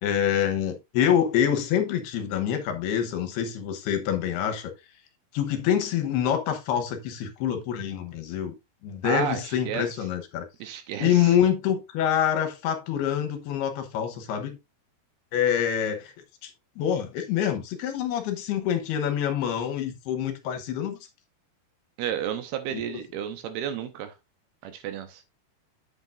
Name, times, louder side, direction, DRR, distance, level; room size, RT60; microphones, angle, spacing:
voice 1, 0.0-4.7 5.3-8.5 8.8-10.5 11.0-14.6 15.3-16.1 16.4-16.5 16.8-21.0 22.7-23.0, left 9 dB, 75° left, 2.9 m, -26 dB
voice 2, 9.0-9.9 10.6-11.3 22.0-24.1 24.6-25.2, right 9 dB, 75° right, 2.6 m, -32 dB
8.7 x 8.2 x 2.5 m
omnidirectional pair, 4.9 m